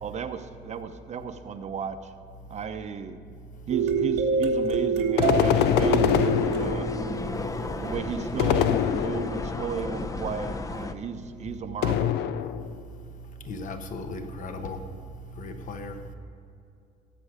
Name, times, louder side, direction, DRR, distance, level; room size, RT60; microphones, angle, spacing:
voice 1, 0.0-2.1 2.5-3.2 3.7-6.9 7.8-12.2, right 6 dB, 45° right, 0.9 m, -34 dB
sound 1, 3.7-8.2, right 5 dB, 90° right, 1.6 m, -27 dB
sound 2, 5.2-7.1 8.4-9.6 11.8-12.8, left 10 dB, 80° left, 0.6 m, -24 dB
sound 3, 5.4-10.9, left 3 dB, 20° left, 0.7 m, -34 dB
voice 2, 13.4-14.9 15.3-16.0, left 2 dB, 50° left, 1.2 m, -36 dB
18.0 x 7.8 x 5.0 m
cardioid pair, 110°, 17 cm